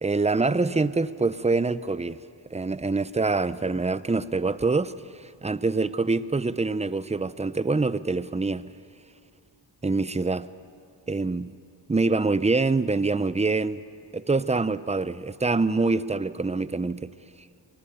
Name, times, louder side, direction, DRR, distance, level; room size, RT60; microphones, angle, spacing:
voice 1, 0.0-2.2 2.5-4.9 5.4-8.7 9.8-10.5 11.1-11.5 11.9-13.8 14.1-17.1, right 3 dB, 15° right, 0.6 m, -25 dB
25.0 x 19.5 x 6.9 m
cardioid pair, 55°, 47 cm